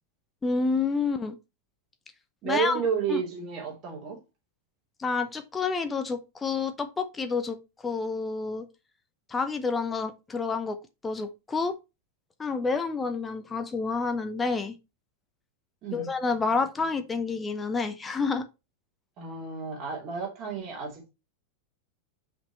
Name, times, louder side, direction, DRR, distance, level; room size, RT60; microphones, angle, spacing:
voice 1, 0.4-1.4 2.4-2.8 3.1-3.2 5.0-7.6 7.8-8.7 9.3-10.8 11.0-11.7 12.4-14.8 15.9-18.5, left 4 dB, 15° left, 0.8 m, -29 dB
voice 2, 2.4-4.2 15.8-16.1 19.2-21.1, right 6 dB, 35° right, 3.3 m, -31 dB
5.9 x 5.3 x 4.3 m
figure-of-eight pair, 90°, 0 cm